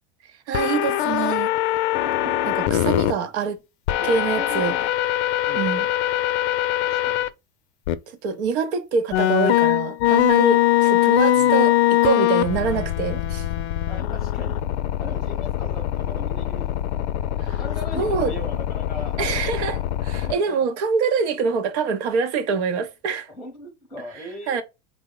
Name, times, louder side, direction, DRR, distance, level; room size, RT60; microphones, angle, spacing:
sound 1, 0.5-3.1 3.9-7.3 7.9-8.0 9.1-20.3, left 13 dB, 85° left, 0.5 m, -22 dB
voice 1, 0.5-1.5 2.2-3.6 4.0-4.7 5.5-5.9 8.1-13.5 17.4-17.6 18.0-18.3 19.2-23.3 24.5-24.6, right 5 dB, 90° right, 0.8 m, -25 dB
voice 2, 4.0-4.9 5.5-5.7 6.8-7.3 10.5-10.6 11.3-11.6 13.9-14.6 15.0-16.9 17.5-19.7 20.3-20.6 23.3-24.6, left 1 dB, ahead, 0.7 m, -39 dB
3.5 x 2.1 x 3.7 m
supercardioid pair, 125°, 33 cm